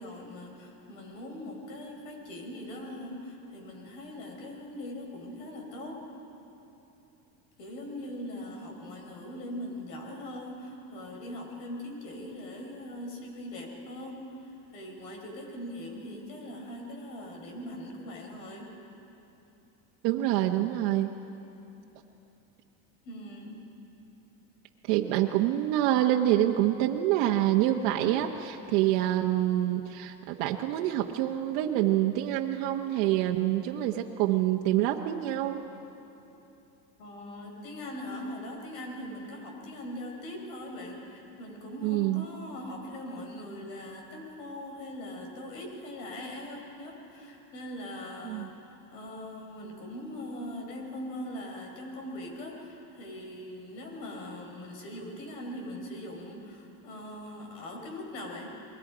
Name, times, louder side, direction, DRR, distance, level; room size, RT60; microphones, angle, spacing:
voice 1, 0.0-6.0 7.6-18.7 23.0-23.7 37.0-58.5, left 1 dB, 85° left, 1 dB, 5.3 m, -41 dB
voice 2, 20.0-21.1 24.9-35.6 41.8-42.2 48.2-48.5, right 13 dB, 70° right, 2 dB, 1.2 m, -26 dB
28.5 x 21.5 x 5.1 m, 2.9 s
supercardioid pair, 120°, 49 cm